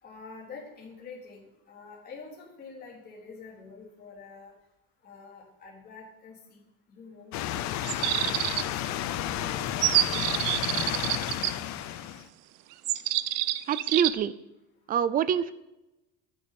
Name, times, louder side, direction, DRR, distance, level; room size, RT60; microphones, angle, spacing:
voice 1, 0.0-4.5 5.0-11.3, left 4 dB, 25° left, -4 dB, 3.8 m, -47 dB
sound 1, 7.3-12.3, left 12 dB, 55° left, 0.8 m, -32 dB
sound 2, 7.8-8.9 9.8-11.5 12.8-14.1, right 16 dB, 65° right, 0.7 m, -27 dB
voice 2, 13.7-14.3 14.9-15.5, right 8 dB, 25° right, 16 dB, 0.5 m, -25 dB
11.0 x 7.2 x 8.7 m, 0.93 s
cardioid pair, 170°, 34 cm